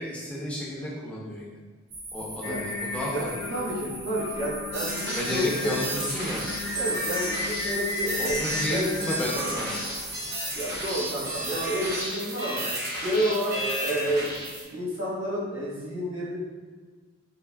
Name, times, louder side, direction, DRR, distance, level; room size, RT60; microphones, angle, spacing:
voice 1, 0.0-1.5 2.1-3.7 5.2-6.4 8.2-9.8, left 1 dB, 5° left, -5 dB, 0.4 m, -32 dB
sound 1, 1.9-12.0, right 2 dB, 90° right, 0.8 m, -40 dB
Singing, 2.4-10.0, left 3 dB, 85° left, 0.4 m, -35 dB
voice 2, 3.5-5.9 6.7-8.4 8.7-9.0 10.5-14.4 14.7-16.5, equal, 70° right, -9 dB, 1.3 m, -30 dB
sound 2, 4.7-14.6, right 1 dB, 50° right, 0.7 m, -33 dB
3.4 x 2.5 x 2.2 m, 1.4 s
head